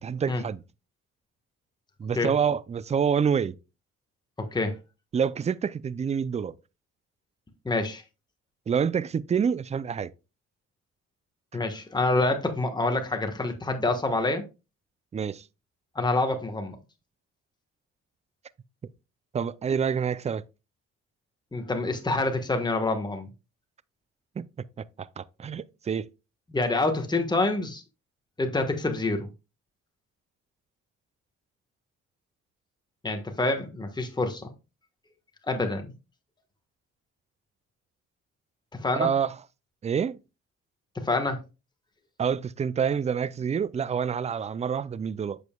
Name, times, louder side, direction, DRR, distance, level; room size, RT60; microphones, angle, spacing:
voice 1, 0.0-0.6 2.0-3.5 5.1-6.6 8.7-10.1 15.1-15.4 19.3-20.4 24.4-24.5 25.0-26.1 38.9-39.3 39.8-40.2 42.2-45.4, right 7 dB, 25° right, 0.4 m, -27 dB
voice 2, 4.4-4.8 7.6-8.0 11.5-14.4 15.9-16.8 21.5-23.3 26.5-27.8 28.4-29.3 33.0-34.5 35.4-35.9 38.8-39.1 40.9-41.4, left 2 dB, 15° left, 1.3 m, -27 dB
8.2 x 6.9 x 2.3 m
cardioid pair, 90°, 30 cm